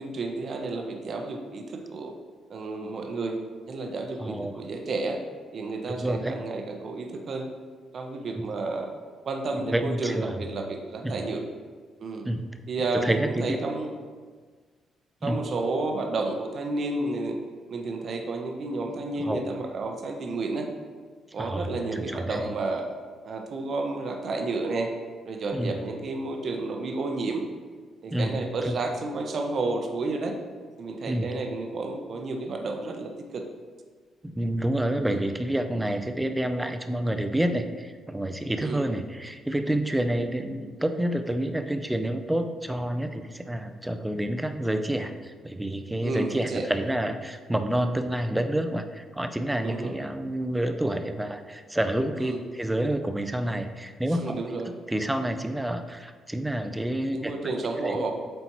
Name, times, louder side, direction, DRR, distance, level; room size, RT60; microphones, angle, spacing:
voice 1, 0.0-2.1 2.5-3.4 3.7-5.2 5.5-7.5 7.9-8.9 9.2-11.4 12.0-12.3 12.7-13.9 15.2-17.4 17.7-20.7 21.3-22.9 23.2-24.9 25.2-27.4 28.0-30.3 30.8-33.4 35.0-35.2 38.6-38.8 46.0-46.7 49.6-49.9 52.2-52.4 54.2-54.7 57.1-58.1, right 3 dB, 50° right, 3 dB, 0.7 m, -31 dB
voice 2, 4.2-4.5 6.0-6.4 8.4-8.5 9.5-10.4 11.0-11.2 12.2-12.4 12.9-13.5 15.2-15.4 19.2-19.4 21.4-22.4 25.5-25.8 28.1-28.7 31.1-31.3 34.2-54.4 54.7-57.3 57.8-58.1, right 1 dB, 10° right, 8 dB, 0.4 m, -28 dB
7.8 x 4.3 x 3.0 m, 1.5 s
cardioid pair, 110°, 0 cm